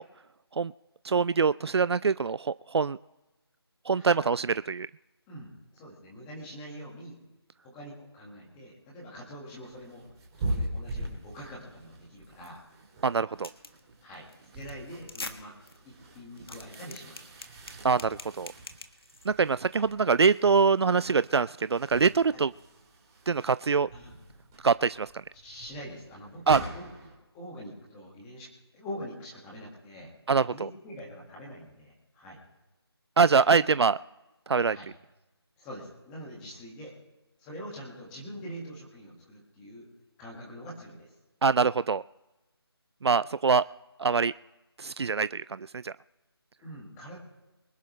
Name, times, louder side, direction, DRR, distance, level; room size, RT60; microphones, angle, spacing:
voice 1, 1.0-3.0 3.9-4.9 13.0-13.5 17.8-18.5 19.3-22.5 23.3-23.9 24.6-25.2 26.5-26.6 30.3-30.7 33.2-34.0 34.5-34.8 41.4-42.0 43.0-43.6 44.0-44.3 44.8-45.9, right 5 dB, 80° right, 16 dB, 0.4 m, -24 dB
voice 2, 5.3-7.2 7.6-10.0 10.4-12.6 14.0-14.3 14.5-15.5 15.8-17.2 22.3-22.4 23.9-24.1 25.3-26.9 27.3-28.5 28.7-30.1 30.5-32.4 33.5-33.6 34.7-34.9 35.6-36.9 37.4-39.9 40.2-41.1 46.6-47.2, equal, 5° left, -3 dB, 1.7 m, -44 dB
sound 1, 9.5-27.2, right 1 dB, 10° right, 2.1 m, -42 dB
sound 2, 13.4-13.8 14.1-14.3 14.6-14.7 15.0-15.3 15.7-15.8 16.2-19.3, left 3 dB, 65° left, 1.5 m, -42 dB
24.5 x 11.0 x 3.2 m, 1.1 s
figure-of-eight pair, 175°, 14 cm